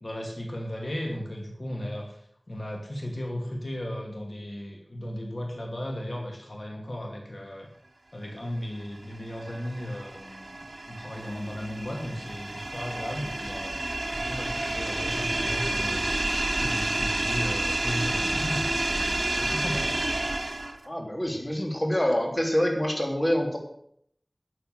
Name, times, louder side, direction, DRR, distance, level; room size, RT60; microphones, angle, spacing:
voice 1, 0.0-2.2 2.5-7.7 8.1-10.5 10.9-13.8 14.1-19.9, equal, 70° left, 1 dB, 2.6 m, -35 dB
sound 1, 9.0-20.9, right 2 dB, 75° right, 1.7 m, -30 dB
voice 2, 20.8-23.6, equal, 30° left, 1 dB, 3.4 m, -26 dB
12.0 x 7.7 x 7.8 m, 0.67 s
wide cardioid pair, 45°, 0 cm